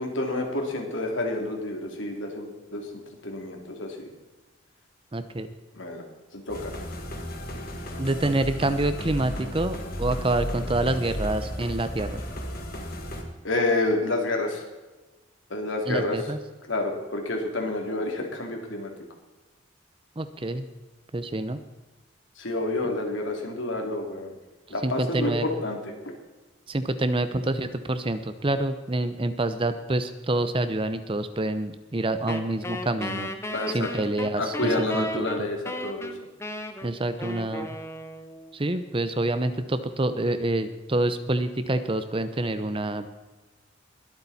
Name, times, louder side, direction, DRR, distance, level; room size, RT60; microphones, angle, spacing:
voice 1, 0.0-2.8 3.2-4.1 5.7-6.0 6.3-6.7 13.4-14.6 15.5-16.2 16.7-18.9 22.4-24.3 24.7-25.9 33.5-33.9 34.4-36.1, left 2 dB, 80° left, 2 dB, 2.9 m, -29 dB
voice 2, 5.1-5.5 8.0-12.2 15.9-16.4 20.2-20.7 21.1-21.6 24.8-25.5 26.7-33.3 33.7-35.5 36.8-37.7 38.5-43.1, right 2 dB, 25° right, 11 dB, 0.7 m, -27 dB
sound 1, 6.5-13.2, equal, 50° left, 2.1 m, -34 dB
Wind instrument woodwind instrument, 32.3-38.6, left 1 dB, 15° left, 0.9 m, -35 dB
22.0 x 8.6 x 4.2 m, 1.2 s
head